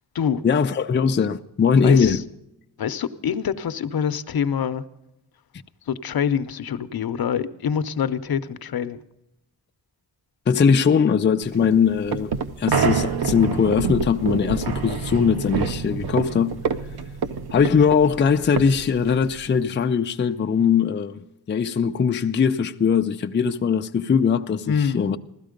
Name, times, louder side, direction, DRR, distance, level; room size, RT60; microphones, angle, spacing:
voice 1, 0.4-2.2 10.5-12.3 12.6-16.5 17.5-25.2, left 6 dB, 30° left, 0.4 m, -20 dB
voice 2, 1.8-2.2 2.8-4.8 5.9-9.0 24.7-25.0, left 7 dB, 70° left, 0.7 m, -25 dB
sound 1, 11.5-19.6, right 6 dB, 80° right, 0.8 m, -27 dB
16.0 x 13.0 x 5.1 m
wide cardioid pair, 150°, 38 cm